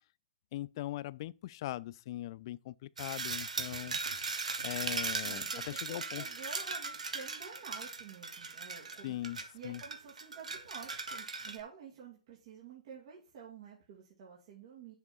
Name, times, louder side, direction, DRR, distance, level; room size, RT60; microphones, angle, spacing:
voice 1, 0.5-4.0 4.6-6.2 9.0-9.8, left 15 dB, 40° left, 0.4 m, -40 dB
sound 1, 3.0-11.6, right 4 dB, 75° right, 1.5 m, -38 dB
voice 2, 5.2-9.1 9.5-14.9, right 6 dB, 40° right, 2.7 m, -50 dB
9.4 x 7.1 x 4.4 m
figure-of-eight pair, 120°, 4 cm